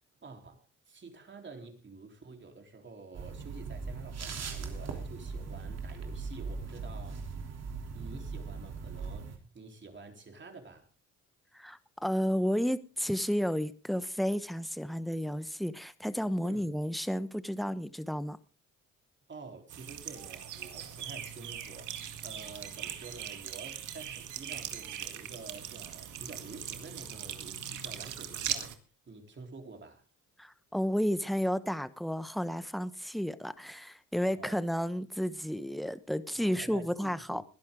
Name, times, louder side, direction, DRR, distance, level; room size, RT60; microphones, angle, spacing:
voice 1, 0.2-7.3 7.9-10.9 16.4-16.7 19.3-28.8 29.1-30.0 34.3-34.6 36.3-37.4, right 3 dB, 40° right, 3.9 m, -49 dB
sound 1, 3.1-9.4, right 4 dB, 55° right, 3.3 m, -39 dB
voice 2, 11.5-18.4 30.4-37.4, equal, ahead, 1.1 m, -32 dB
sound 2, 19.7-28.7, right 10 dB, 80° right, 2.0 m, -40 dB
21.0 x 11.5 x 3.8 m
cardioid pair, 90°, 30 cm